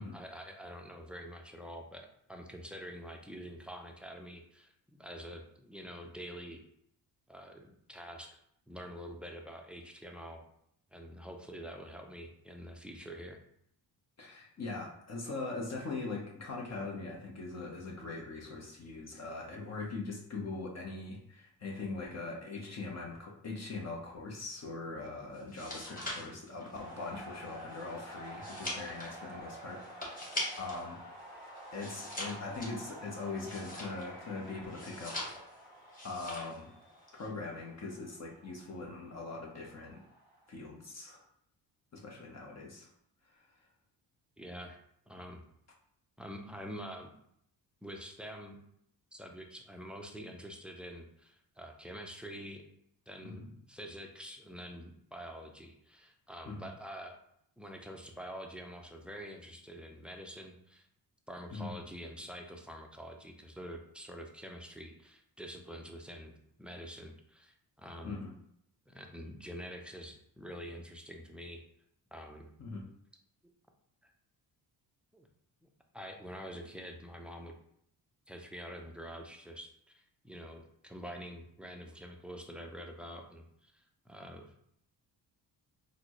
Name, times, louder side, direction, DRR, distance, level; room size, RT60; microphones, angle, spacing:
voice 1, 0.0-6.6 7.3-8.4 8.7-10.4 10.9-13.4 44.4-45.4 46.2-47.1 47.8-48.6 49.1-52.6 53.1-57.2 57.6-60.9 61.3-66.3 66.6-68.2 68.9-71.6 72.1-72.5 74.0-74.1 75.1-75.3 75.6-75.7 75.9-77.5 78.3-84.5, equal, 5° right, 3 dB, 0.5 m, -46 dB
voice 2, 14.2-30.3 30.6-31.0 31.7-35.6 36.0-36.7 37.1-40.0 40.5-41.2 41.9-42.9 53.2-53.5 56.4-56.7 61.5-61.7 68.0-68.3 72.6-72.8, left 3 dB, 40° left, -1 dB, 0.8 m, -41 dB
sound 1, 25.4-30.9 31.2-34.2 34.7-35.6 35.9-36.6 36.9-37.3, left 1 dB, 20° left, 1.3 m, -42 dB
sound 2, 26.7-40.5, equal, 55° left, 1.5 m, -50 dB
4.1 x 2.0 x 3.0 m, 0.71 s
cardioid pair, 70°, 42 cm